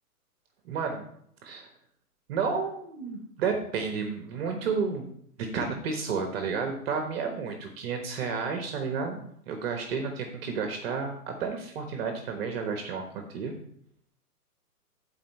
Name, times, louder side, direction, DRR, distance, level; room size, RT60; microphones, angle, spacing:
voice 1, 0.6-1.1 1.4-1.7 2.3-5.1 5.4-9.2 9.5-13.5, right 5 dB, 40° right, 5 dB, 1.3 m, -31 dB
13.5 x 4.5 x 4.3 m, 0.67 s
hypercardioid pair, 130°, 47 cm